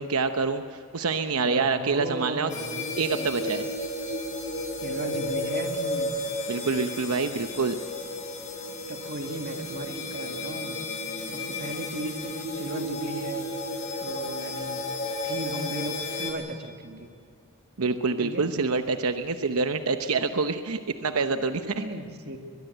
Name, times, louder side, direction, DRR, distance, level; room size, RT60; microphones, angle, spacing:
voice 1, 0.0-2.5 3.0-3.7 6.5-7.8 17.8-21.8, right 4 dB, 85° right, 8 dB, 0.9 m, -26 dB
voice 2, 1.4-3.3 4.8-6.1 8.9-10.8 11.3-13.5 14.0-14.8 15.2-17.1 18.2-18.5 21.7-22.4, right 1 dB, 45° right, 4 dB, 2.0 m, -36 dB
sound 1, 2.5-16.3, left 2 dB, 35° left, 4.0 m, -33 dB
22.0 x 22.0 x 8.0 m, 2.5 s
head